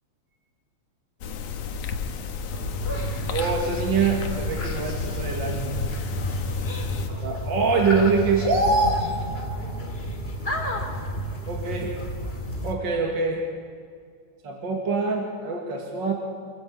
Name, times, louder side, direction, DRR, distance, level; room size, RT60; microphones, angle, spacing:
sound 1, 1.2-7.1, left 5 dB, 80° left, 2.6 m, -33 dB
sound 2, 2.5-12.7, equal, 20° left, 2.4 m, -31 dB
voice 1, 3.3-5.8 7.2-9.0 11.5-11.9 12.6-13.4 14.4-16.1, right 4 dB, 40° right, 1 dB, 2.5 m, -24 dB
26.5 x 15.0 x 8.5 m, 2.1 s
omnidirectional pair, 3.3 m